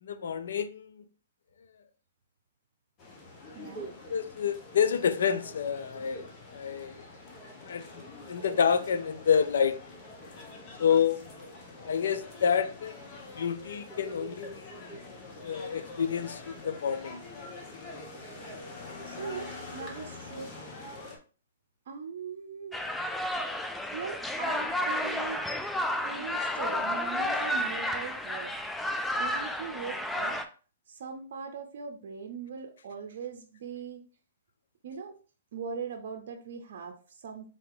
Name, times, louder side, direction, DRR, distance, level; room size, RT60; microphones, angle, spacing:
voice 1, 0.0-0.9 4.1-7.0 7.7-9.8 10.8-11.2 11.9-12.9 13.4-15.0 15.4-17.3, left 7 dB, 75° left, 0.5 m, -28 dB
sound 1, 3.0-21.2, left 2 dB, 30° left, 1.0 m, -45 dB
voice 2, 3.5-3.9 19.0-20.5 21.9-22.9 23.9-25.4 26.0-28.5 29.2-30.4 30.9-34.0 34.8-35.2 35.5-37.5, right 5 dB, 60° right, 0.6 m, -40 dB
sound 2, 22.7-30.4, left 1 dB, 5° left, 0.4 m, -31 dB
3.9 x 2.8 x 3.7 m
hypercardioid pair, 140°, 0 cm